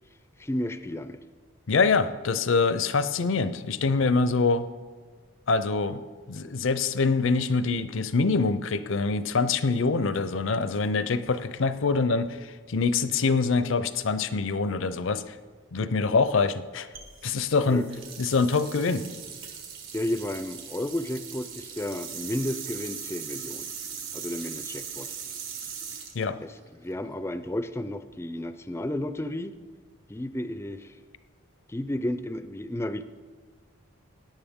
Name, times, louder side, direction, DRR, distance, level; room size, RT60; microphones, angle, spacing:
voice 1, 0.4-1.2 17.7-17.9 19.9-23.7 24.1-25.1 26.4-29.5 30.1-30.9 31.7-33.0, left 1 dB, 10° left, 11 dB, 0.4 m, -32 dB
voice 2, 1.7-4.6 5.5-6.0 6.3-15.4 15.7-16.9 17.2-17.8 18.2-19.1 26.1-26.4, left 4 dB, 65° left, 13 dB, 0.5 m, -25 dB
sound 1, 16.9-27.1, right 7 dB, 70° right, 1.7 m, -40 dB
17.0 x 9.4 x 3.6 m, 1.5 s
head